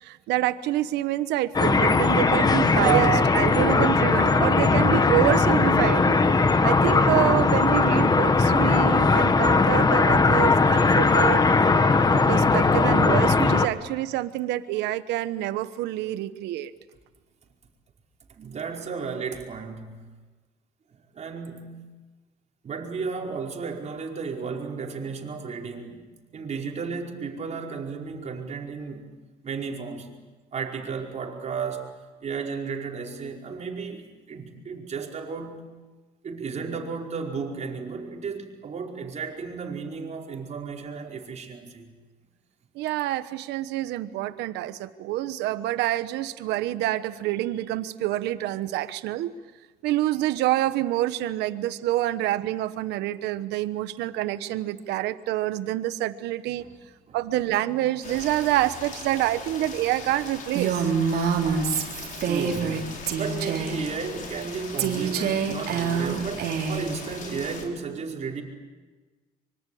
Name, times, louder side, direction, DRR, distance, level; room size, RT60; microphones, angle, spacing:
voice 1, 0.0-11.4 12.1-16.7 42.7-49.3 49.8-56.6 57.1-60.8, right 14 dB, 85° right, 1.1 m, -27 dB
sound 1, 1.5-13.7, left 3 dB, 25° left, 1.6 m, -19 dB
voice 2, 18.4-20.0 20.9-21.8 22.6-26.1 26.3-29.1 29.4-30.1 30.5-35.6 36.2-41.9 56.6-56.8 57.1-57.2 62.2-68.4, right 5 dB, 40° right, 4.9 m, -34 dB
Rain, 58.0-67.6, left 4 dB, 50° left, 5.5 m, -40 dB
Female speech woman speaking, 60.5-62.8 63.1-63.8 64.8-66.9, right 6 dB, 65° right, 3.8 m, -26 dB
25.5 x 24.5 x 8.6 m
cardioid pair, 110°, 17 cm